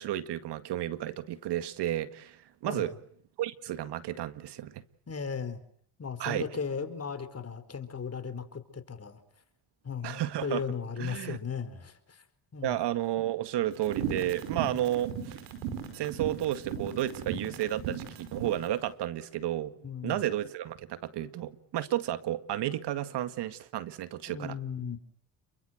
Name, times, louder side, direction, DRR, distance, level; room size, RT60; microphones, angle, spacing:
voice 1, 0.0-2.9 3.4-4.8 6.2-6.5 10.0-10.6 11.0-11.4 12.6-15.4 15.9-19.7 20.0-24.6, right 13 dB, 70° right, 2.0 m, -32 dB
voice 2, 2.7-3.0 5.1-5.6 6.0-9.2 9.8-12.2 12.5-12.8 19.8-20.3 24.3-25.0, left 6 dB, 35° left, 4.4 m, -36 dB
sound 1, 13.8-18.6, right 9 dB, 90° right, 5.1 m, -36 dB
29.0 x 23.0 x 8.0 m
supercardioid pair, 75°, 43 cm